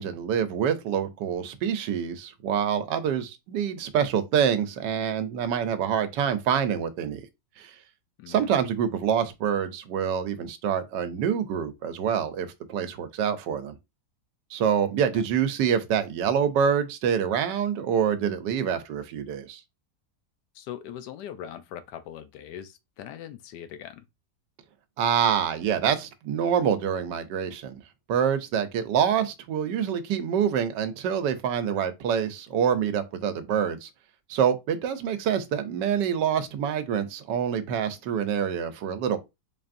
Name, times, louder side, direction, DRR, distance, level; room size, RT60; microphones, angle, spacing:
voice 1, 0.0-7.2 7.6-7.7 8.3-13.8 14.5-19.6 25.0-27.7 28.1-33.9 34.3-39.2, right 8 dB, 90° right, 1.3 m, -26 dB
voice 2, 8.2-8.7 15.1-15.2 20.5-24.0, left 10 dB, 80° left, 1.2 m, -41 dB
4.1 x 3.3 x 2.5 m
omnidirectional pair, 1.8 m